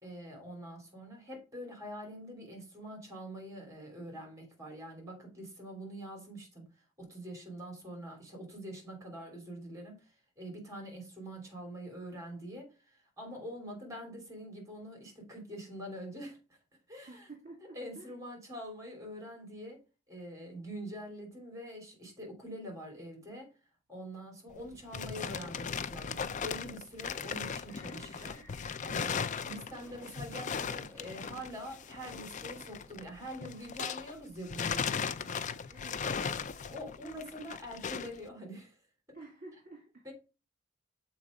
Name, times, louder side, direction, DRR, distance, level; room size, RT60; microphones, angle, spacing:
voice 1, 0.0-6.6 7.0-16.4 16.9-17.3 17.7-19.8 20.1-23.5 23.9-28.4 28.8-35.4 36.6-38.7 40.0-40.1, equal, 15° right, 3.1 m, -45 dB
voice 2, 17.1-18.2 35.7-36.5 39.1-40.0, right 2 dB, 40° right, 2.0 m, -51 dB
sound 1, 24.5-34.2 34.5-38.2, left 6 dB, 35° left, 0.4 m, -37 dB
sound 2, 27.7-33.7, equal, 10° left, 1.5 m, -58 dB
7.1 x 4.3 x 5.0 m
head